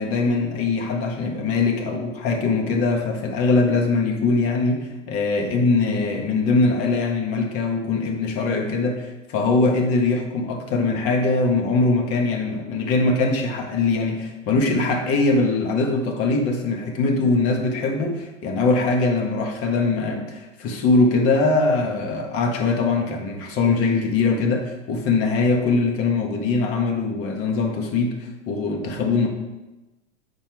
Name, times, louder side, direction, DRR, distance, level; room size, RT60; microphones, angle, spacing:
voice 1, 0.0-29.3, left 3 dB, 40° left, 2 dB, 1.5 m, -22 dB
7.1 x 4.5 x 4.8 m, 1.1 s
hypercardioid pair, 105°, 36 cm